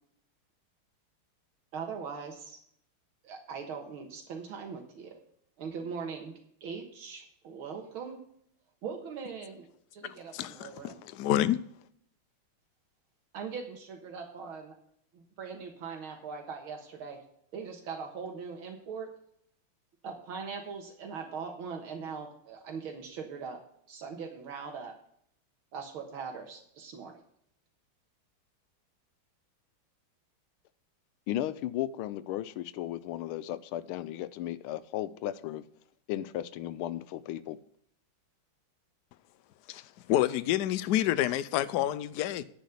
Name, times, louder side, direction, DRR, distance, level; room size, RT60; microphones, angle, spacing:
voice 1, 1.7-2.6 3.2-5.2 5.6-6.3 6.6-8.2 8.8-9.7 9.9-11.0 13.3-14.8 15.1-17.2 17.5-19.1 20.0-23.6 23.9-24.9 25.7-27.2, right 5 dB, 80° right, 2.1 m, -40 dB
voice 2, 10.3-11.6 39.7-39.8 40.1-42.4, left 13 dB, 70° left, 1.0 m, -28 dB
voice 3, 31.3-35.6 36.1-37.6, left 13 dB, 85° left, 1.5 m, -35 dB
10.5 x 5.2 x 8.3 m
omnidirectional pair, 2.3 m